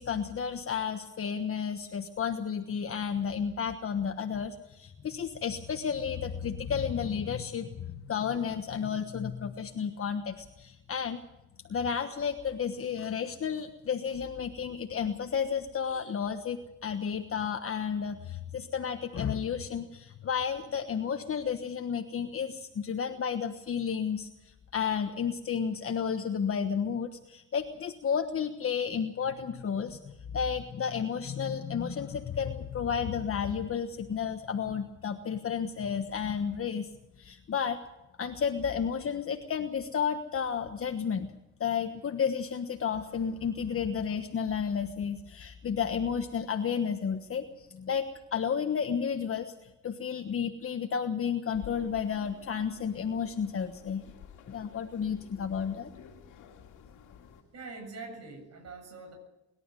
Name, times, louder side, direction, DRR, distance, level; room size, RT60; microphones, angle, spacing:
voice 1, 0.0-11.2 11.7-36.9 37.2-37.8 38.2-41.3 41.6-54.0 54.5-55.9, left 7 dB, 45° left, 6 dB, 1.3 m, -32 dB
sound 1, 51.5-57.4, left 8 dB, 90° left, 2.3 m, -52 dB
voice 2, 57.5-59.1, right 3 dB, 60° right, 3 dB, 7.5 m, -44 dB
23.5 x 12.0 x 9.1 m, 0.93 s
cardioid pair, 90°, 30 cm